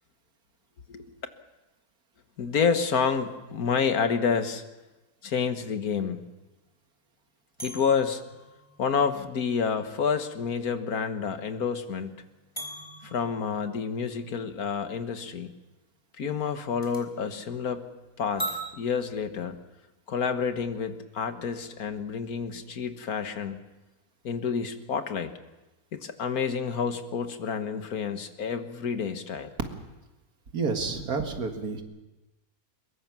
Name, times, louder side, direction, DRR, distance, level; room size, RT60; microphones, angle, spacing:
voice 1, 2.4-4.6 5.2-6.2 7.6-8.2 8.8-12.1 13.0-15.5 16.2-17.9 18.2-18.5 18.7-19.6 20.1-23.6 24.2-25.3 25.9-29.5, left 6 dB, 75° left, 8 dB, 1.8 m, -29 dB
sound 1, 7.6-10.9 11.3-11.4 12.5-14.3 16.8-17.0 18.4-18.7, right 1 dB, 5° left, 3.6 m, -40 dB
voice 2, 30.5-31.8, right 4 dB, 80° right, 5 dB, 2.4 m, -29 dB
22.5 x 21.5 x 6.1 m, 1.1 s
omnidirectional pair, 1.6 m